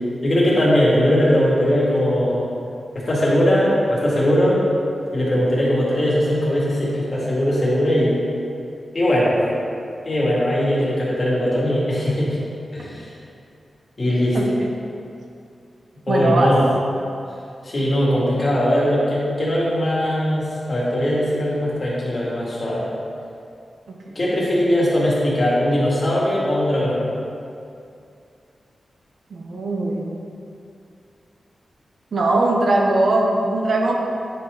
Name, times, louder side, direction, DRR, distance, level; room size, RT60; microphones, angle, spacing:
voice 1, 0.2-2.5 2.9-4.6 5.1-8.2 8.9-9.4 10.1-12.4 12.7-13.1 14.0-14.5 16.1-16.6 17.6-22.9 24.2-27.0, equal, 30° left, -6 dB, 2.0 m, -20 dB
voice 2, 14.3-14.7 16.1-16.5 24.1-24.2 29.3-30.2 32.1-34.0, right 2 dB, 60° right, 0 dB, 0.8 m, -20 dB
9.4 x 4.4 x 4.9 m, 2.5 s
wide cardioid pair, 170°, 0 cm